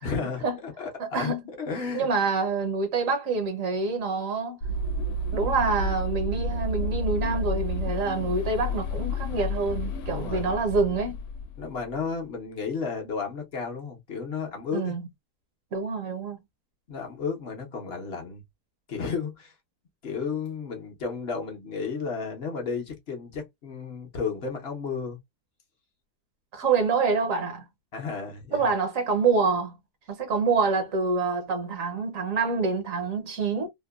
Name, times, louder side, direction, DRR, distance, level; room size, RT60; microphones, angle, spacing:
voice 1, 0.0-2.1 10.1-10.6 11.6-14.9 16.9-18.4 18.9-19.5 20.0-25.2 27.9-28.7, left 5 dB, 50° left, 0.8 m, -33 dB
voice 2, 1.0-1.4 1.9-4.6 5.3-11.2 14.7-15.1 15.7-16.4 26.5-27.6 28.5-29.8 30.1-33.7, right 4 dB, 60° right, 1.0 m, -26 dB
sound 1, 4.6-12.0, left 1 dB, 90° left, 1.2 m, -31 dB
2.8 x 2.1 x 2.2 m
omnidirectional pair, 1.7 m